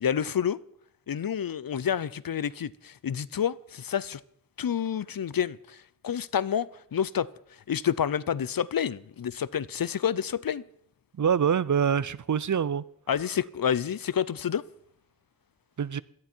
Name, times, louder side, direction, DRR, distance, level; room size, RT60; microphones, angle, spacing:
voice 1, 0.0-0.6 1.1-4.2 4.6-5.8 6.0-7.3 7.7-10.6 13.1-14.6, left 8 dB, 75° left, 0.6 m, -29 dB
voice 2, 11.2-12.8 15.8-16.0, right 7 dB, 55° right, 0.6 m, -25 dB
18.0 x 13.0 x 4.5 m
wide cardioid pair, 55°, 35 cm